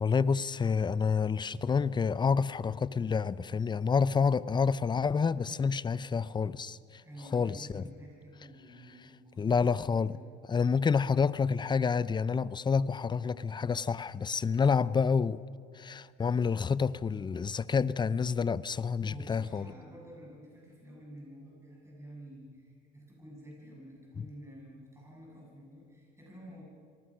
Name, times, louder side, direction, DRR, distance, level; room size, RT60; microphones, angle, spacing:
voice 1, 0.0-7.0 7.3-7.8 9.4-10.1 10.5-15.4 15.7-19.7 24.2-24.3, left 5 dB, 20° left, 0.6 m, -28 dB
voice 2, 7.0-10.2 19.0-26.6, equal, 15° right, 7.6 m, -50 dB
27.0 x 19.5 x 6.3 m
cardioid pair, 115°, 21 cm